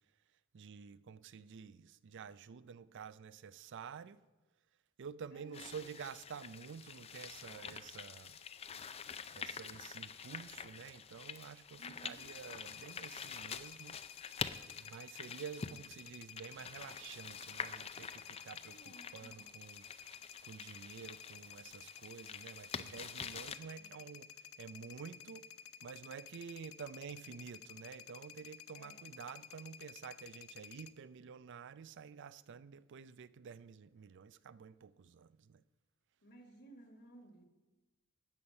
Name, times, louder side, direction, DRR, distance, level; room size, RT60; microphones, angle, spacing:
voice 1, 0.5-4.2 5.0-8.4 9.3-14.0 14.8-20.1 20.4-25.5 25.8-35.6, right 6 dB, 60° right, 0.4 m, -50 dB
voice 2, 5.3-5.8 11.8-12.3 18.6-19.9 23.7-24.0 28.7-29.0 36.2-37.5, right 1 dB, 50° left, 1.5 m, -58 dB
sound 1, 5.5-23.6, left 6 dB, 30° left, 0.5 m, -47 dB
sound 2, 12.2-30.9, left 9 dB, 75° left, 0.6 m, -53 dB
13.0 x 8.8 x 5.3 m
head